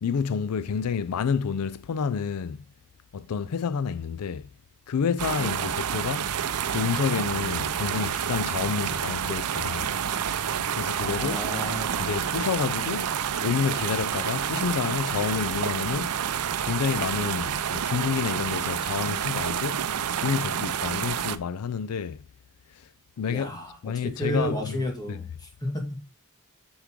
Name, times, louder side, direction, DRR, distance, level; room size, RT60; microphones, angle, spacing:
voice 1, 0.0-2.6 3.1-4.5 4.9-6.3 6.7-10.0 10.7-11.4 12.0-13.1 13.4-16.2 16.6-19.9 20.2-22.2 22.7-22.9 23.2-23.5 23.8-25.2, left 6 dB, 80° left, 0.4 m, -29 dB
sound 1, 5.2-21.4, right 8 dB, 85° right, 0.6 m, -29 dB
voice 2, 11.0-12.2 23.3-26.0, equal, 20° left, 2.1 m, -32 dB
8.1 x 6.1 x 3.7 m
head